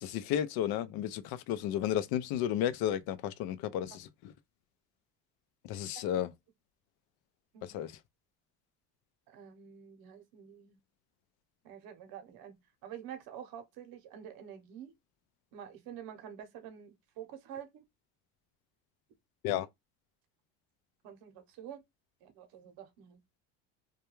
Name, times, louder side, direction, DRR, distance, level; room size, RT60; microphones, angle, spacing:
voice 1, 0.0-4.3 5.6-6.3 7.6-8.0 19.4-19.7, left 11 dB, 70° left, 0.5 m, -33 dB
voice 2, 9.3-10.8 11.6-12.5 12.8-14.9 15.5-17.8 21.0-21.8 22.2-23.2, right 9 dB, 70° right, 0.8 m, -48 dB
2.2 x 2.2 x 3.0 m
supercardioid pair, 105°, 38 cm